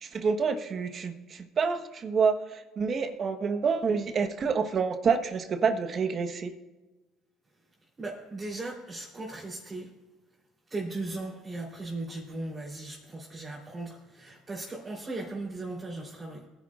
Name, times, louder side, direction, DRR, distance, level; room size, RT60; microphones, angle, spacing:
voice 1, 0.0-6.5, right 5 dB, 45° right, 8 dB, 1.3 m, -28 dB
voice 2, 8.0-9.9 10.7-16.4, right 2 dB, 30° right, -5 dB, 3.6 m, -37 dB
21.0 x 11.0 x 2.5 m, 1.2 s
supercardioid pair, 75°, 0 cm